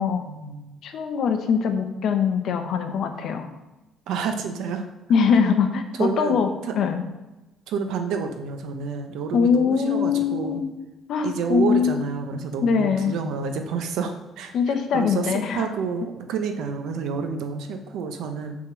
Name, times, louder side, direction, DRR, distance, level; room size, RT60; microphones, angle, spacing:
voice 1, 0.3-0.8 4.1-4.9 5.9-6.7 7.7-10.6 11.2-14.5 14.9-18.6, right 5 dB, 75° right, 6 dB, 0.8 m, -29 dB
voice 2, 0.8-3.5 5.1-7.0 9.3-10.7 11.1-12.0 12.6-13.1 14.5-15.7, left 6 dB, 55° left, 6 dB, 0.8 m, -22 dB
6.0 x 3.8 x 6.0 m, 1.0 s
cardioid pair, 155°, 0 cm